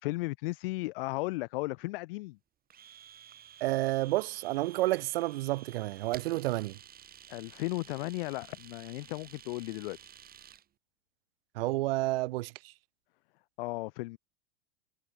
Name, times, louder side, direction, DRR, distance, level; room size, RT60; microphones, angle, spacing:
voice 1, 0.0-2.4 7.3-10.1 13.6-14.2, left 22 dB, 60° left, 3.3 m, -35 dB
Domestic sounds home sounds, 2.7-10.6, right 9 dB, 30° right, 4.9 m, -53 dB
voice 2, 3.6-6.8 11.5-12.7, right 18 dB, 65° right, 1.2 m, -30 dB
hypercardioid pair, 110°, 31 cm